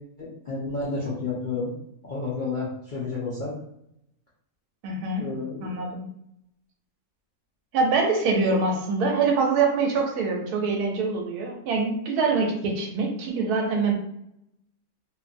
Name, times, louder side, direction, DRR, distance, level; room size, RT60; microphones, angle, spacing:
voice 1, 0.2-1.7 2.0-3.5 5.2-5.7, left 3 dB, 60° left, -7 dB, 0.5 m, -31 dB
voice 2, 4.8-5.3 5.6-6.0 7.7-13.9, right 4 dB, 80° right, 1 dB, 1.2 m, -24 dB
2.6 x 2.6 x 2.5 m, 0.76 s
omnidirectional pair, 1.6 m